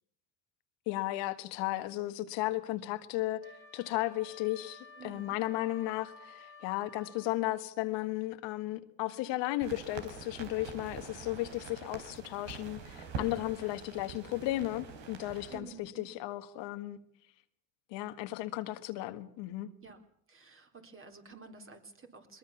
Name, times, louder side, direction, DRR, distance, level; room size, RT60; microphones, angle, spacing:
voice 1, 0.8-17.0 17.9-19.7, left 16 dB, 75° left, 1.8 m, -35 dB
Wind instrument woodwind instrument, 3.4-7.4, left 3 dB, 55° right, 6.2 m, -53 dB
voice 2, 5.0-5.4 13.1-13.4 15.5-16.1 19.8-20.0 20.3-22.4, right 5 dB, 30° right, 3.9 m, -51 dB
sound 1, 9.6-15.6, right 5 dB, 80° right, 4.3 m, -45 dB
21.5 x 21.0 x 7.2 m
supercardioid pair, 95°, 44 cm